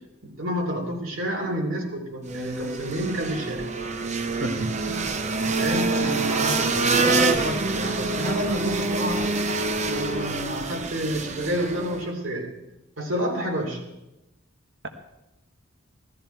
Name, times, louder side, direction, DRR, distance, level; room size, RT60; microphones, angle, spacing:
voice 1, 0.2-3.7 5.5-9.4 9.8-12.5 13.0-13.8, equal, 80° right, 0 dB, 2.9 m, -29 dB
sound 1, 2.2-12.1, right 3 dB, 35° right, 0.7 m, -26 dB
voice 2, 4.4-5.2, equal, 60° right, 5 dB, 1.3 m, -32 dB
16.5 x 13.0 x 4.5 m, 0.97 s
head